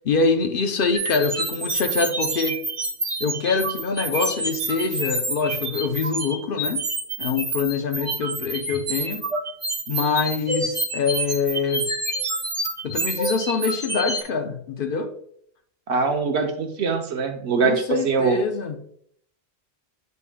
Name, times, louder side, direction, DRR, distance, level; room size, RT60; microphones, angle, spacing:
voice 1, 0.0-2.6 3.2-6.8 7.2-9.3 9.9-11.9 12.8-15.1 17.6-18.8, left 4 dB, 60° left, 7 dB, 0.8 m, -25 dB
sound 1, 0.9-14.2, right 2 dB, 30° right, 1.0 m, -28 dB
voice 2, 15.9-18.4, right 4 dB, 90° right, 5 dB, 1.1 m, -23 dB
8.2 x 5.5 x 2.2 m, 0.66 s
omnidirectional pair, 1.1 m